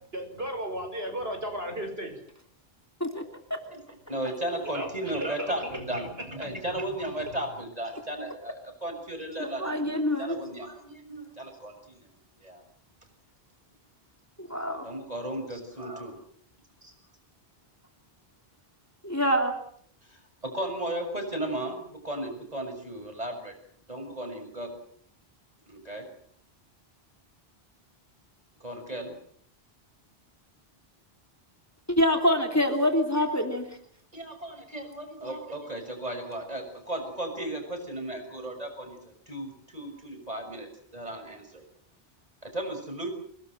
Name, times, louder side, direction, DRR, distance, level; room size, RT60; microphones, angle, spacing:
voice 1, 0.0-2.1 4.6-4.9 5.2-6.8 7.2-7.4, equal, 75° right, 5 dB, 6.6 m, -36 dB
voice 2, 4.1-12.0 12.4-12.6 14.5-16.2 16.8-16.9 20.1-23.5 23.9-24.7 25.7-26.0 28.6-29.1 34.1-41.6 42.4-43.1, right 1 dB, 40° right, 5 dB, 6.6 m, -35 dB
voice 3, 9.4-10.4 14.4-14.9 19.0-19.5 31.9-33.7, left 1 dB, 15° left, 4 dB, 3.2 m, -25 dB
27.5 x 20.0 x 7.8 m, 0.64 s
omnidirectional pair, 1.0 m